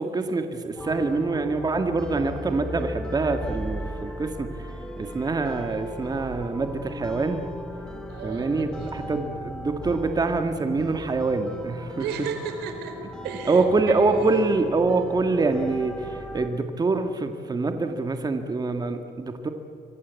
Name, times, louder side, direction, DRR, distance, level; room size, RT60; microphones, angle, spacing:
voice 1, 0.0-7.4 8.2-12.0 13.5-19.5, right 3 dB, 25° right, 6 dB, 1.7 m, -25 dB
sound 1, 0.8-16.5, equal, 5° left, 2.8 m, -37 dB
voice 2, 8.1-8.9 11.9-14.4, right 6 dB, 85° right, 7 dB, 4.4 m, -35 dB
27.0 x 24.0 x 8.3 m, 2.5 s
cardioid pair, 110°, 17 cm